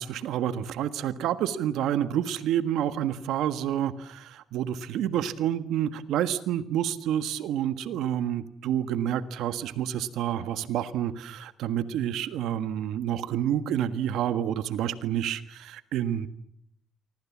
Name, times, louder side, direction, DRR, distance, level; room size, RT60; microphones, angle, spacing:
voice 1, 0.0-16.3, right 10 dB, 85° right, 12 dB, 1.6 m, -29 dB
30.0 x 24.5 x 7.4 m, 0.72 s
cardioid pair, 90°, 0 cm